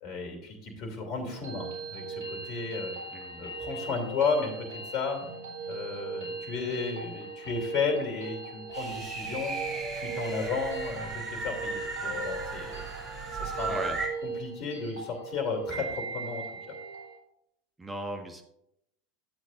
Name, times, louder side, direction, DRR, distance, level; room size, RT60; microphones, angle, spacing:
voice 1, 0.0-3.0 3.4-5.2 5.7-9.6 9.9-12.8 13.3-13.9 14.2-16.4, left 4 dB, 45° left, 4 dB, 2.8 m, -33 dB
sound 1, 1.2-17.2, right 3 dB, 80° right, 3.6 m, -39 dB
voice 2, 3.1-3.5 13.7-14.0 17.8-18.4, right 1 dB, 15° right, 4 dB, 1.5 m, -37 dB
sound 2, 8.7-14.1, right 3 dB, 30° right, 2.4 m, -36 dB
12.0 x 8.1 x 2.6 m, 0.79 s
figure-of-eight pair, 80°, 0 cm